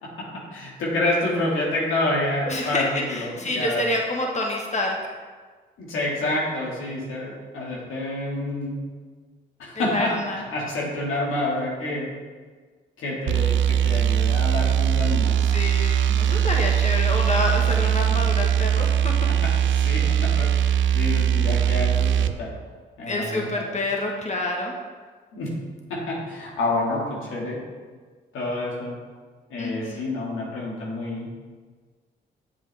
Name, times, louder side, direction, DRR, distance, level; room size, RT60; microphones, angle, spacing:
voice 1, 0.0-3.9 5.8-8.8 9.6-12.1 13.0-15.4 19.3-22.5 23.0-23.6 25.3-25.5 25.9-27.6 28.3-29.0 29.5-31.3, left 2 dB, 80° left, -4 dB, 2.2 m, -28 dB
voice 2, 2.5-4.9 9.7-10.4 15.5-19.3 23.1-24.7 29.6-30.1, left 2 dB, 35° left, 0 dB, 1.6 m, -27 dB
sound 1, 13.3-22.4, right 9 dB, 70° right, 0.5 m, -21 dB
8.6 x 7.4 x 3.6 m, 1.5 s
supercardioid pair, 50°, 21 cm